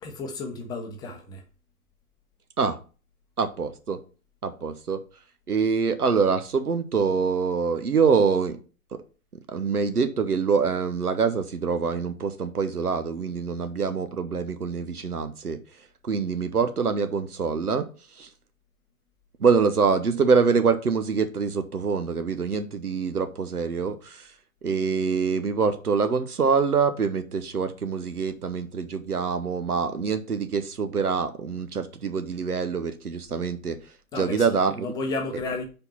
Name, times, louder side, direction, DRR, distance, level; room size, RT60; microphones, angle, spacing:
voice 1, 0.0-1.4 34.1-35.6, left 3 dB, 10° left, 0.7 m, -33 dB
voice 2, 3.4-4.0 4.4-5.0 5.5-8.6 9.5-15.6 16.0-17.9 18.2-18.3 19.4-24.3 24.6-33.8 34.2-34.9, right 5 dB, 90° right, 0.8 m, -25 dB
5.3 x 4.4 x 5.5 m
figure-of-eight pair, 125°, 44 cm